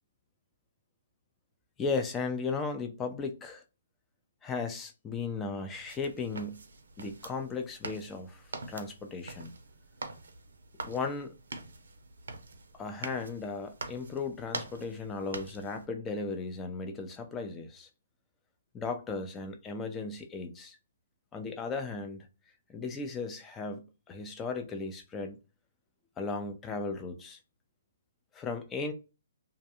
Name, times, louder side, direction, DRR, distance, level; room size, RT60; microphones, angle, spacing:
voice 1, 1.8-3.6 4.4-6.6 7.0-9.5 10.8-11.3 12.7-17.9 18.7-20.8 21.3-22.3 22.7-25.4 26.2-27.4 28.3-28.9, left 4 dB, 15° left, 0.4 m, -36 dB
sound 1, 5.7-15.9, right 3 dB, 80° right, 0.5 m, -45 dB
2.4 x 2.1 x 2.8 m
hypercardioid pair, 145°, 0 cm